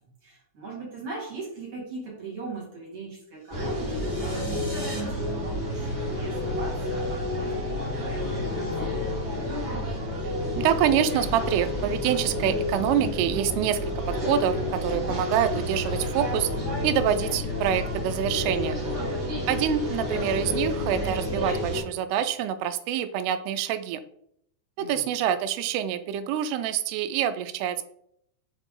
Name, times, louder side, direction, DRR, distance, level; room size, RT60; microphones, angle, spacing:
voice 1, 0.2-8.9 18.9-19.5 24.8-25.0, right 3 dB, 45° right, -4 dB, 2.5 m, -40 dB
sound 1, 3.4-5.0, right 1 dB, 60° right, 0.4 m, -44 dB
sound 2, 3.5-21.8, left 1 dB, 25° right, 3.0 m, -30 dB
voice 2, 10.2-16.5 16.8-18.8 19.5-24.0 24.8-27.8, right 9 dB, 85° right, 12 dB, 2.6 m, -26 dB
7.1 x 4.8 x 3.7 m, 0.71 s
omnidirectional pair, 4.6 m